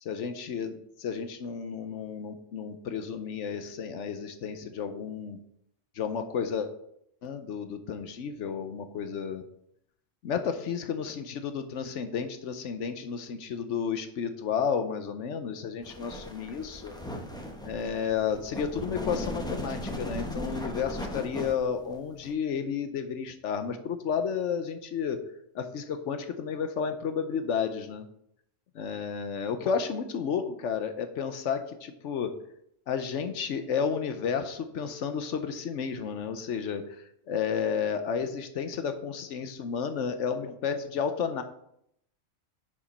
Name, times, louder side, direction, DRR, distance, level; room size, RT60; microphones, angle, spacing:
voice 1, 0.0-5.4 6.0-6.7 7.2-9.4 10.2-16.9 17.6-25.2 25.5-28.1 28.7-32.3 32.9-37.0 37.3-41.4, left 6 dB, 70° left, 8 dB, 1.0 m, -32 dB
sound 1, 15.8-22.3, left 1 dB, 5° left, 0.7 m, -37 dB
6.9 x 5.1 x 5.2 m, 0.74 s
omnidirectional pair, 1.3 m